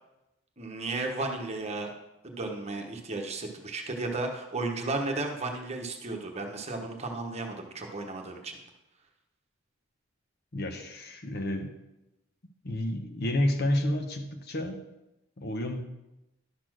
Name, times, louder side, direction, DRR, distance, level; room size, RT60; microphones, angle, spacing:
voice 1, 0.6-1.9 2.2-8.6, right 2 dB, 30° right, 2 dB, 1.1 m, -34 dB
voice 2, 10.5-11.7 12.6-14.8 15.4-15.8, left 1 dB, 50° left, 6 dB, 0.9 m, -30 dB
11.5 x 4.3 x 6.1 m, 0.94 s
head